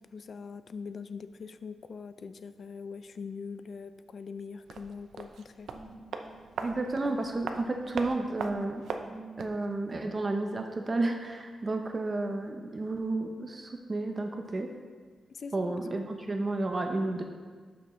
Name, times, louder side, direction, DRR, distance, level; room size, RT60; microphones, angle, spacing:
voice 1, 0.0-5.7 15.3-15.7, left 5 dB, 50° left, 12 dB, 0.4 m, -42 dB
sound 1, 4.6-9.6 9.9-10.0, right 5 dB, 85° right, 0.5 m, -40 dB
sound 2, 5.7-10.5, right 2 dB, 10° right, 2.4 m, -48 dB
voice 2, 6.6-8.8 9.4-14.7 15.5-17.2, right 2 dB, 30° right, 4 dB, 0.6 m, -31 dB
11.5 x 6.1 x 3.1 m, 1.5 s
wide cardioid pair, 125°, 0 cm